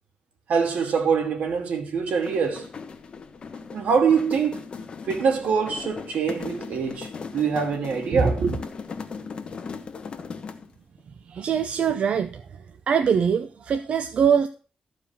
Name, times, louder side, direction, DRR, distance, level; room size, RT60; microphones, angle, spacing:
voice 1, 0.5-2.7 3.7-4.6 5.1-8.6, right 5 dB, 80° right, 2.7 m, -24 dB
sound 1, 2.1-10.8, left 5 dB, 40° left, 1.1 m, -38 dB
voice 2, 11.3-12.4 12.9-14.5, right 7 dB, 55° right, 0.6 m, -22 dB
13.5 x 5.0 x 7.2 m
wide cardioid pair, 170°, 3 cm